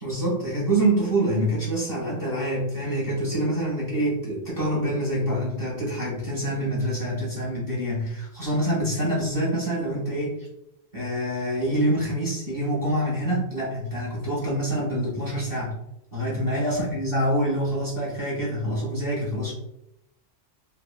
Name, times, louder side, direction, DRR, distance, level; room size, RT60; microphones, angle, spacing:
voice 1, 0.0-10.5 10.9-15.7 16.1-19.5, right 1 dB, 20° left, -7 dB, 1.0 m, -26 dB
3.2 x 2.1 x 2.3 m, 0.83 s
omnidirectional pair, 1.2 m